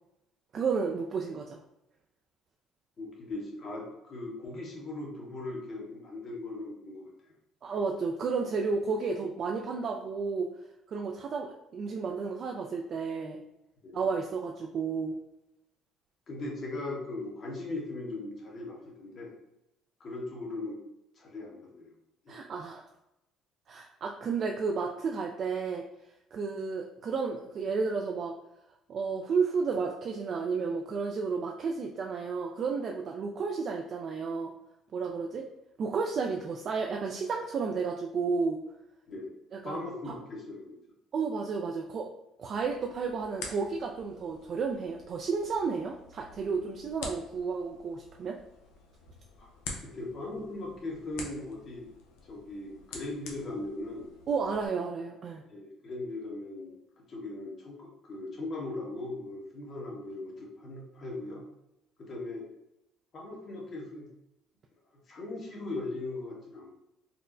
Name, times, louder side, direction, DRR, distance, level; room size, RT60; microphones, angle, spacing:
voice 1, 0.5-1.6 7.6-10.5 10.9-13.4 13.9-15.2 22.3-22.8 23.7-25.9 26.3-28.4 28.9-34.5 34.9-35.5 35.8-38.6 39.5-39.8 40.1-40.2 41.1-42.1 42.4-48.4 54.3-55.4, right 5 dB, 50° right, 1 dB, 0.3 m, -32 dB
voice 2, 3.0-7.1 8.9-9.0 13.8-13.9 16.3-19.3 20.0-20.8 21.1-21.9 22.2-22.4 39.1-39.3 39.6-40.8 49.4-49.5 49.8-51.9 52.3-54.1 55.4-61.4 62.0-62.5 63.1-64.1 65.1-66.8, left 2 dB, 45° left, -2 dB, 1.1 m, -39 dB
sound 1, 42.5-54.7, left 4 dB, 85° left, 0.5 m, -48 dB
4.2 x 2.0 x 2.5 m, 0.88 s
supercardioid pair, 85°, 0 cm